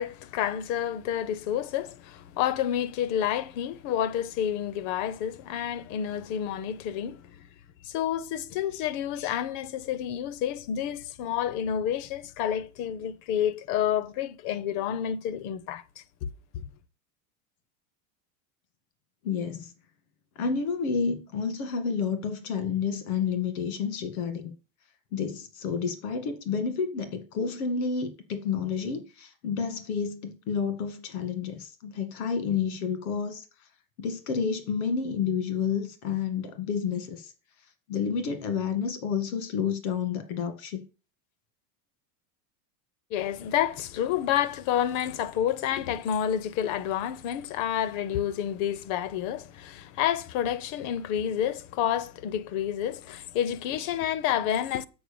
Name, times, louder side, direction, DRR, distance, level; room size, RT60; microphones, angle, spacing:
voice 1, 0.0-7.5 7.8-16.7 43.1-54.9, left 10 dB, 45° left, 0.6 m, -29 dB
voice 2, 19.2-19.7 20.4-24.5 25.1-33.5 34.0-37.3 37.9-40.8, left 6 dB, 80° left, 1.9 m, -30 dB
7.9 x 4.6 x 6.8 m
supercardioid pair, 155°, 43 cm